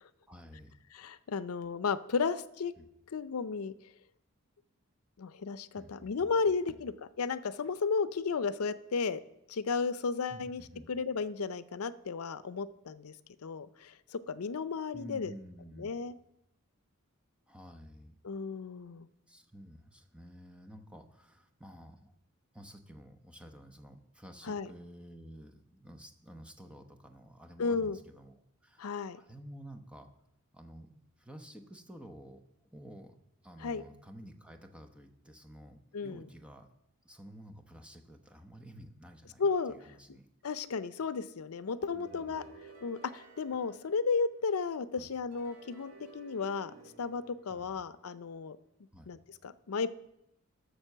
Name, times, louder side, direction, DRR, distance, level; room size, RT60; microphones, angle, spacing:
voice 1, 0.3-0.7 2.8-2.9 5.7-6.3 6.7-6.8 10.3-10.9 14.9-16.0 17.5-18.2 19.3-22.1 22.5-28.3 28.6-30.1 30.5-33.2 33.4-36.7 37.0-39.4 39.7-40.3 41.9-42.5 45.0-45.1 47.5-47.8 48.9-49.1, equal, 5° right, 5 dB, 0.9 m, -51 dB
voice 2, 0.9-2.7 3.1-3.7 5.2-9.2 9.5-10.6 10.9-13.1 13.4-15.3 15.8-16.1 18.2-19.1 24.5-24.7 27.6-28.0 28.8-29.2 33.6-33.8 35.9-36.3 39.4-39.7 40.4-42.4 42.8-46.7 47.0-48.6 49.1-49.9, left 5 dB, 85° left, 14 dB, 0.5 m, -33 dB
sound 1, 41.8-44.6 45.3-48.1, right 4 dB, 90° right, 2.7 m, -55 dB
12.0 x 6.7 x 6.7 m, 0.82 s
head